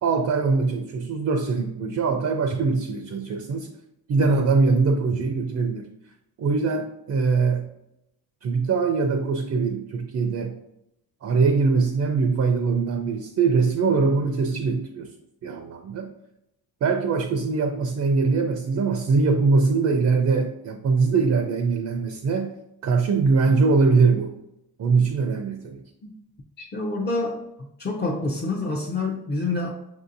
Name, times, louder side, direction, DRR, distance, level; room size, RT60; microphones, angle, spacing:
voice 1, 0.0-3.7 4.1-5.9 6.4-7.7 8.4-10.6 11.2-15.1 15.4-16.1 16.8-22.5 22.8-24.3 24.8-25.8, right 4 dB, 45° right, 6 dB, 0.4 m, -22 dB
voice 2, 26.6-27.4 27.8-29.7, left 3 dB, 25° left, -1 dB, 0.5 m, -27 dB
6.1 x 2.7 x 2.5 m, 0.85 s
cardioid pair, 120°, 40 cm